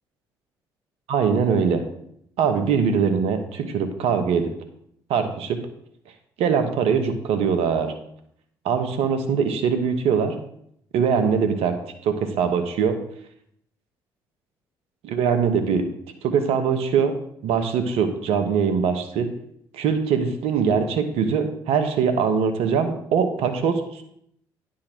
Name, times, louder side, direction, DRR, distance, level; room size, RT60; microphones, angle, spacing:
voice 1, 1.1-1.8 2.4-4.5 5.1-5.6 6.4-7.9 8.6-10.3 10.9-11.8 12.0-12.9 15.0-15.9 16.2-17.1 17.4-19.3 19.7-24.0, right 6 dB, 75° right, 7 dB, 1.1 m, -22 dB
9.9 x 3.8 x 6.1 m, 0.71 s
hypercardioid pair, 55°, 10 cm